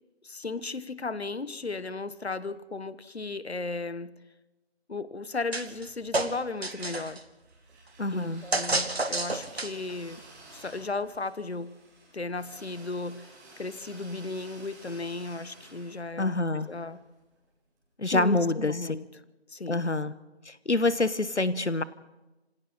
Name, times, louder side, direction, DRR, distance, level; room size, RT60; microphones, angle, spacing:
voice 1, 0.2-4.1 4.9-7.2 8.1-10.2 10.5-11.7 12.1-13.3 13.6-16.3 16.7-17.0 18.0-19.1 19.5-19.9, left 3 dB, 65° left, 15 dB, 1.3 m, -35 dB
sound 1, 5.5-5.9 6.1-7.2 8.5-9.9, right 2 dB, 65° right, 2.2 m, -29 dB
sound 2, 5.7-6.2 6.6-17.4, right 2 dB, 5° right, 4.3 m, -53 dB
voice 2, 8.0-8.4 16.2-16.7 18.0-19.0 19.7-20.1 20.4-21.8, left 2 dB, 90° left, 15 dB, 1.3 m, -26 dB
27.0 x 26.5 x 4.2 m, 1.0 s
figure-of-eight pair, 160°, 34 cm